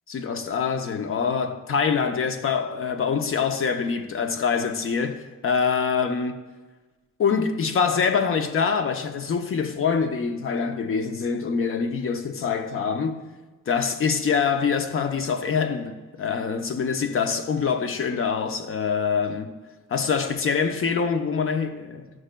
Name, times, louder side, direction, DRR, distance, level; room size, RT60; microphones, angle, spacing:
voice 1, 0.1-6.4 7.2-13.3 13.7-19.5 19.9-22.1, left 6 dB, 45° left, 0.7 m, -25 dB
11.5 x 6.2 x 2.2 m
cardioid pair, 90°, 30 cm